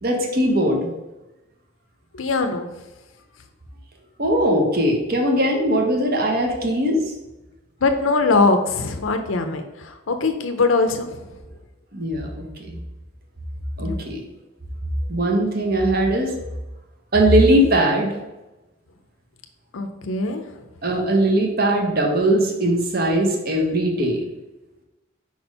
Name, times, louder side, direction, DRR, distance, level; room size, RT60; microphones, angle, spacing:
voice 1, 0.0-0.9 4.2-7.0 11.9-12.7 13.8-14.2 15.1-16.3 17.1-18.2 20.8-24.2, right 1 dB, 45° right, 2 dB, 1.0 m, -20 dB
voice 2, 2.1-2.7 7.8-11.2 13.8-14.0 19.7-20.4, left 3 dB, 75° left, 7 dB, 0.6 m, -21 dB
4.9 x 4.4 x 5.3 m, 1.0 s
head